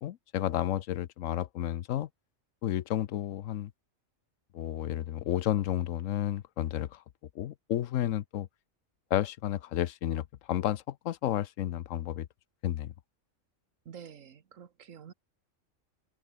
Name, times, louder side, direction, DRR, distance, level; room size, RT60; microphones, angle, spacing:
voice 1, 0.0-2.1 2.6-3.7 4.5-7.0 7.3-8.5 9.1-12.3 12.6-12.9, left 12 dB, 80° left, 1.1 m, -31 dB
voice 2, 13.8-15.1, right 8 dB, 80° right, 1.6 m, -48 dB
omnidirectional pair, 1.3 m